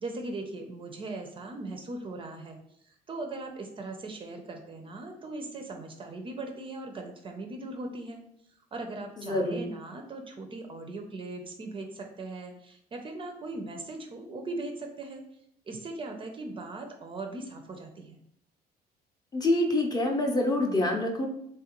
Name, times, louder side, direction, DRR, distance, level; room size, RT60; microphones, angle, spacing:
voice 1, 0.0-2.6 2.8-8.2 8.7-15.2 15.7-18.2, right 2 dB, 30° right, 3 dB, 0.4 m, -39 dB
voice 2, 9.2-9.6 19.3-21.3, left 1 dB, 25° left, 2 dB, 0.5 m, -26 dB
3.3 x 2.4 x 2.9 m, 0.72 s
cardioid pair, 110°, 17 cm